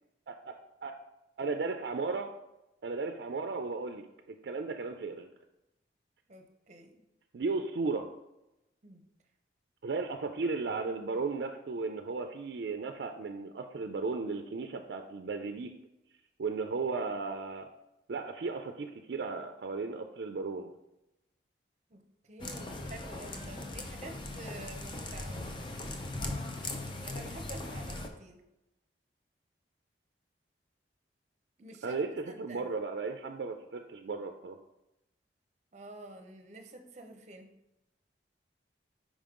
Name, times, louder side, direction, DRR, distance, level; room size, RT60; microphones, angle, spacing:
voice 1, 0.3-0.9 1.4-2.3 2.8-5.3 7.3-8.1 9.8-15.7 16.4-17.7 18.1-20.7 31.8-34.6, right 4 dB, 70° right, 6 dB, 0.4 m, -35 dB
voice 2, 6.3-7.0 8.8-9.0 21.9-25.7 27.0-28.4 31.6-32.8 35.7-37.5, right 2 dB, 40° right, 5 dB, 0.7 m, -49 dB
sound 1, 22.4-28.1, left 2 dB, 25° left, 0.5 m, -39 dB
5.2 x 5.0 x 3.7 m, 0.92 s
head